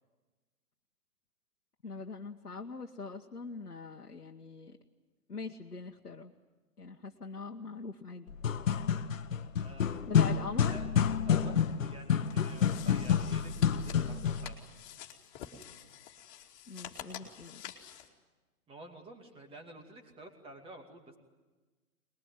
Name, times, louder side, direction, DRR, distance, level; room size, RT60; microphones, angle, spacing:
voice 1, 1.8-4.8 5.3-6.3 6.8-8.3 10.1-10.8 16.7-17.7, left 4 dB, 90° left, 1 dB, 1.4 m, -42 dB
sound 1, 8.3-14.5, left 8 dB, 60° left, 1.1 m, -29 dB
voice 2, 9.6-10.1 10.4-10.9 11.2-14.8 18.7-21.2, right 2 dB, 10° right, 4 dB, 2.5 m, -50 dB
sound 2, 12.2-18.1, left 10 dB, 30° left, 2.5 m, -49 dB
23.5 x 21.0 x 9.3 m, 1.3 s
figure-of-eight pair, 130°, 45 cm